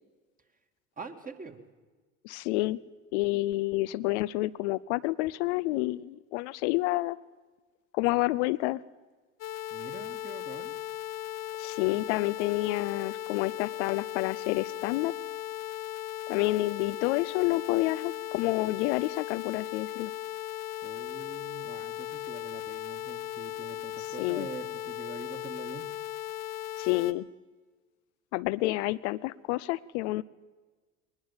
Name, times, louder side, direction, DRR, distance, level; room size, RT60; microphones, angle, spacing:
voice 1, 1.0-1.6 9.7-10.8 20.8-25.9, right 4 dB, 20° right, 5 dB, 2.3 m, -44 dB
voice 2, 2.2-2.8 3.1-7.2 7.9-8.8 11.6-15.1 16.3-20.1 24.2-24.5 26.8-27.3 28.3-30.2, left 19 dB, 65° left, 14 dB, 0.6 m, -29 dB
sound 1, 9.4-27.1, left 12 dB, 45° left, 1.2 m, -37 dB
21.5 x 19.5 x 7.3 m, 1.4 s
hypercardioid pair, 70°, 38 cm